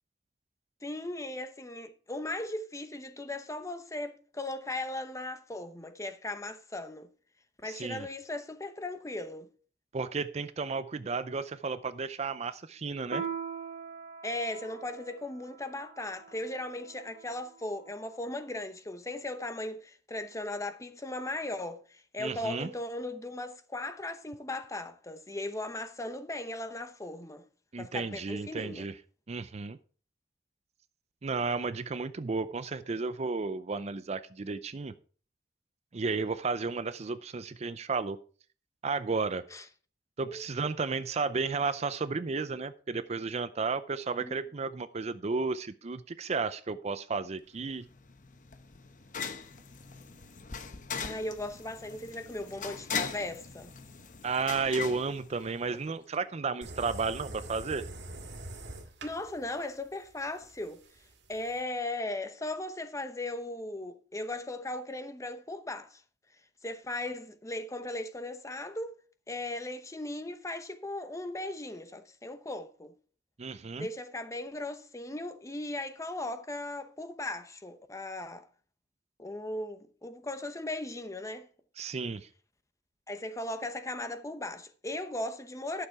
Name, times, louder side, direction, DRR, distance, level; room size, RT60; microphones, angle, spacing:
voice 1, 0.8-7.1 7.6-9.5 14.2-27.4 27.8-28.8 39.5-39.6 40.3-40.4 44.2-44.4 51.0-53.7 59.0-60.8 61.3-66.0 66.6-69.0 69.3-72.9 73.8-78.4 79.2-81.5 83.1-85.9, left 2 dB, 20° left, 0.9 m, -37 dB
voice 2, 7.6-8.1 9.9-13.3 22.2-22.7 27.7-28.9 29.3-29.8 31.2-34.9 35.9-38.2 38.8-39.4 40.2-47.9 54.2-57.9 73.4-73.9 81.8-82.3, right 4 dB, 40° right, 0.5 m, -33 dB
Piano, 13.1-18.1, right 6 dB, 60° right, 1.0 m, -42 dB
sound 1, 47.6-55.9, left 6 dB, 50° left, 0.9 m, -40 dB
sound 2, 56.6-61.6, right 1 dB, 90° right, 2.0 m, -45 dB
11.5 x 6.8 x 4.6 m
head